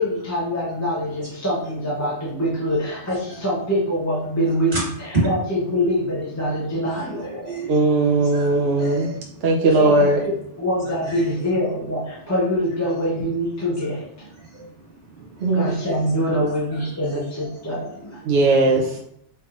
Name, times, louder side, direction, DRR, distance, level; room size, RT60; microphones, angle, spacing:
voice 1, 0.0-7.6 9.8-10.1 10.6-14.3 15.5-18.2, equal, 20° left, -4 dB, 0.6 m, -24 dB
voice 2, 6.8-7.8 8.2-9.8 10.8-11.2 14.4-15.8 16.7-17.2 17.7-17.9 18.2-18.5, right 2 dB, 45° right, -6 dB, 1.7 m, -32 dB
voice 3, 7.7-9.1 9.4-10.2 15.4-15.7 18.3-19.0, right 2 dB, 65° right, 0 dB, 0.8 m, -18 dB
4.4 x 3.3 x 2.4 m, 0.73 s
omnidirectional pair, 1.2 m